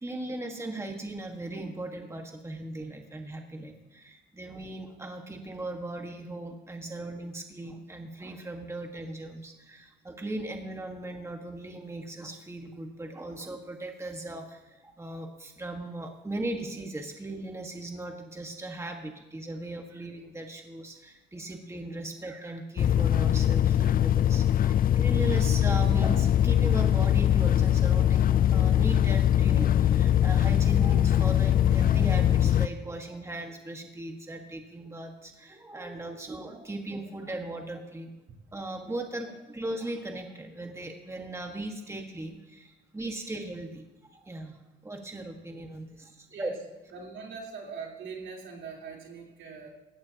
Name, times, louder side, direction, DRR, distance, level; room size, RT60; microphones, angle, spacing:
voice 1, 0.0-38.1 38.5-43.8 44.2-44.6 44.8-46.5, right 2 dB, 15° right, 3 dB, 1.6 m, -38 dB
sound 1, 22.8-32.7, left 11 dB, 45° left, 0.5 m, -22 dB
voice 2, 36.2-36.6 46.3-46.6 46.9-49.7, right 5 dB, 75° right, -2 dB, 3.7 m, -42 dB
19.0 x 16.5 x 2.9 m, 1.0 s
cardioid pair, 90°, 20 cm